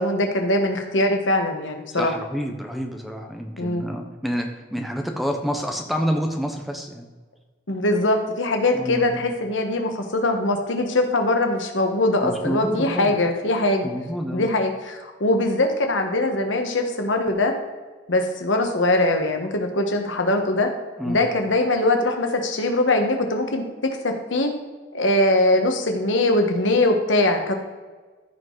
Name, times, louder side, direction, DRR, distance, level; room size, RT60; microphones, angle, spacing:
voice 1, 0.0-2.1 3.6-3.8 7.7-13.9 14.3-17.5 18.1-20.7 21.0-23.6 24.0-24.5 24.9-27.5, left 2 dB, 90° left, 4 dB, 1.4 m, -22 dB
voice 2, 1.9-7.1 8.7-9.2 12.2-13.2 13.8-14.5 21.0-21.2, equal, ahead, 4 dB, 0.8 m, -28 dB
14.5 x 5.2 x 3.9 m, 1.4 s
head